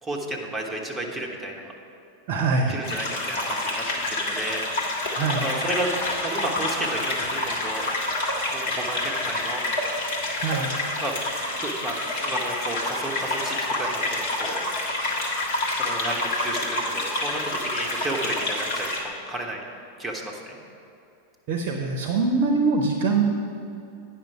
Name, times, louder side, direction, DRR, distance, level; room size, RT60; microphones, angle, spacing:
voice 1, 0.0-1.7 2.7-4.6 5.4-5.9 6.2-7.8 8.5-9.6 11.0-11.2 11.6-14.6 15.7-19.6 20.0-20.6, right 1 dB, 5° right, -2 dB, 1.1 m, -32 dB
voice 2, 2.3-2.8 5.2-5.5 10.4-10.7 21.5-23.2, right 4 dB, 45° right, 3 dB, 0.7 m, -23 dB
sound 1, 2.8-19.0, left 2 dB, 50° left, 1.3 m, -28 dB
9.3 x 5.7 x 4.8 m, 2.7 s
figure-of-eight pair, 90°, 0 cm